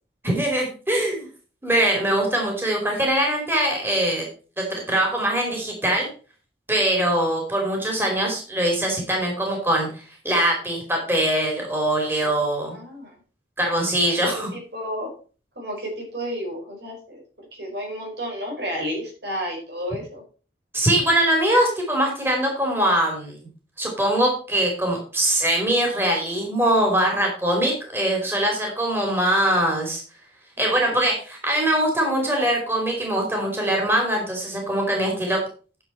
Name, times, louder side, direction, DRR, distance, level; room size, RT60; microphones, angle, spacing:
voice 1, 0.2-1.3 1.6-4.2 4.6-6.1 6.7-12.7 13.6-14.5 20.7-23.4 23.8-30.0 30.6-35.4, right 1 dB, 15° right, 0 dB, 2.9 m, -22 dB
voice 2, 12.7-13.1 14.3-15.1 15.6-17.2 17.5-20.2 30.6-30.7, equal, 70° right, 0 dB, 4.5 m, -32 dB
10.0 x 7.2 x 4.4 m, 0.38 s
head